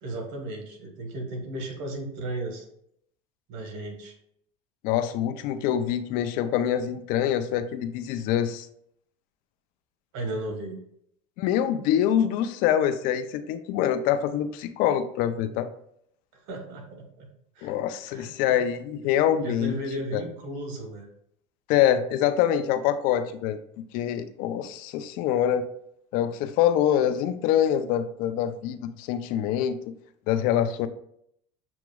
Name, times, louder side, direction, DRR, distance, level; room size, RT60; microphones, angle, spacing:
voice 1, 0.0-2.7 3.5-4.2 10.1-10.8 16.3-17.3 17.5-17.7 18.1-18.6 19.4-21.1, right 1 dB, 75° right, 3 dB, 1.3 m, -35 dB
voice 2, 4.8-8.7 11.4-15.7 17.6-19.8 20.1-20.2 21.7-23.6 23.9-25.7 26.1-29.8 30.3-30.9, left 10 dB, 70° left, 11 dB, 0.4 m, -25 dB
6.9 x 3.0 x 2.3 m, 0.70 s
supercardioid pair, 115°, 15 cm